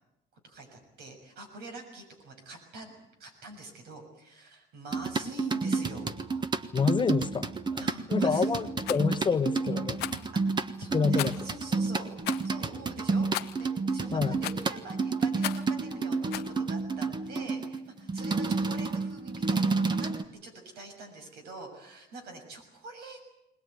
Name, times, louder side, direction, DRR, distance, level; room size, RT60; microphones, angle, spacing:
voice 1, 0.4-2.9 3.2-6.5 7.7-8.6 10.1-12.1 12.4-13.3 13.6-20.1 20.4-23.3, right 2 dB, 70° right, 6.6 m, -45 dB
sound 1, 4.9-20.2, right 4 dB, 25° right, 1.4 m, -30 dB
voice 2, 6.7-7.8 8.1-10.0 10.9-11.4 14.1-14.3, left 5 dB, 25° left, 1.1 m, -28 dB
Rattle, 8.8-9.0 10.0-10.3 11.2-11.5 12.2-12.5 13.3-13.6 14.4-14.7 15.4-15.7 16.3-16.5, left 16 dB, 85° left, 1.0 m, -35 dB
21.0 x 20.0 x 9.4 m
cardioid pair, 110°, 17 cm